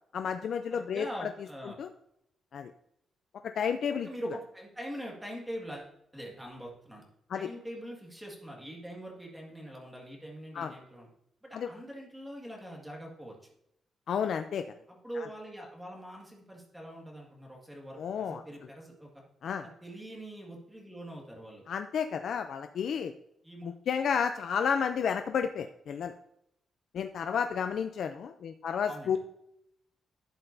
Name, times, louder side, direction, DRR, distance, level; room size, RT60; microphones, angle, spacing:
voice 1, 0.1-1.3 1.8-1.9 2.5-2.7 3.4-4.1 7.3-7.5 10.5-10.7 11.5-11.7 14.1-14.7 15.2-15.3 18.0-18.4 19.4-19.7 21.7-23.1 23.6-26.1 26.9-29.2, left 7 dB, 55° left, 8 dB, 0.4 m, -31 dB
voice 2, 0.7-1.8 4.0-7.0 7.3-11.1 11.4-13.4 14.9-19.2 19.6-21.7 23.4-23.7 28.9-29.2, right 1 dB, 5° right, -2 dB, 1.9 m, -43 dB
11.5 x 7.9 x 2.7 m, 0.78 s
wide cardioid pair, 175°, 0 cm